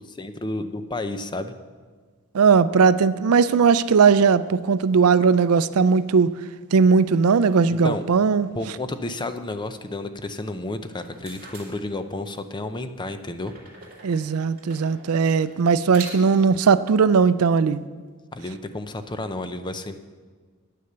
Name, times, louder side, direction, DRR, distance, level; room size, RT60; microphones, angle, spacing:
voice 1, 0.0-1.5 7.7-8.0 8.5-13.5 18.3-20.0, left 2 dB, 20° left, 9 dB, 0.6 m, -31 dB
voice 2, 2.3-6.3 6.7-8.5 14.0-17.8, right 5 dB, 85° right, 14 dB, 0.5 m, -18 dB
sound 1, 10.8-12.4 13.4-16.6, right 4 dB, 45° right, 2.7 m, -44 dB
9.7 x 9.5 x 6.7 m, 1.5 s
head